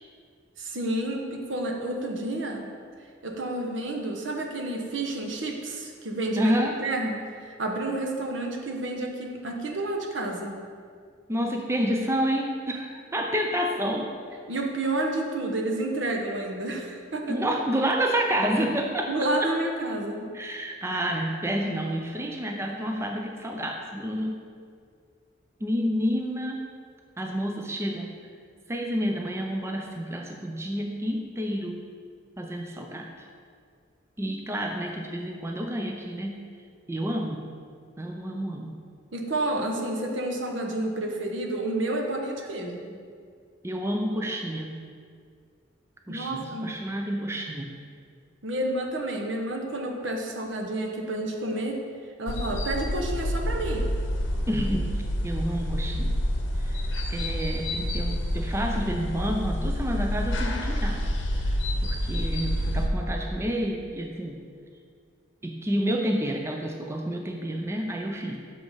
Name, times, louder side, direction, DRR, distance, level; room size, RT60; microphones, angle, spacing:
voice 1, 0.6-2.6 3.2-6.5 6.8-10.6 14.5-17.4 19.1-20.3 39.1-42.9 46.1-46.7 48.4-51.8 52.2-53.9, right 1 dB, 75° right, 2 dB, 0.9 m, -30 dB
voice 2, 6.4-6.8 11.3-14.1 17.3-19.1 19.4-19.5 20.3-24.4 25.6-26.7 27.2-28.2 28.7-31.8 32.4-33.1 34.2-36.5 36.9-37.5 38.0-38.8 43.6-44.8 46.1-47.7 54.5-56.2 56.6-61.0 61.5-64.4 65.4-68.4, equal, 15° right, 2 dB, 0.4 m, -29 dB
sound 1, 52.3-62.9, equal, 70° left, 0.8 m, -28 dB
6.9 x 4.9 x 5.4 m, 2.1 s
head